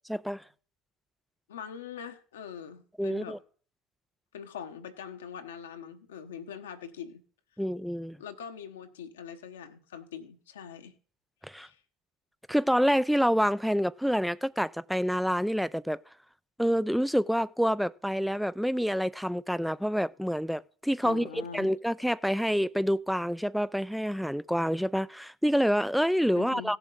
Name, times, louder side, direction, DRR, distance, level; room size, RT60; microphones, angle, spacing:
voice 1, 0.1-0.4 3.0-3.4 7.6-8.2 11.4-11.7 12.5-16.0 16.6-26.8, equal, ahead, 0.4 m, -27 dB
voice 2, 1.5-3.4 4.3-7.2 8.2-10.9 11.5-11.8 21.0-21.7 26.3-26.7, left 7 dB, 80° left, 1.0 m, -43 dB
17.0 x 7.1 x 3.8 m
hypercardioid pair, 65°, 0 cm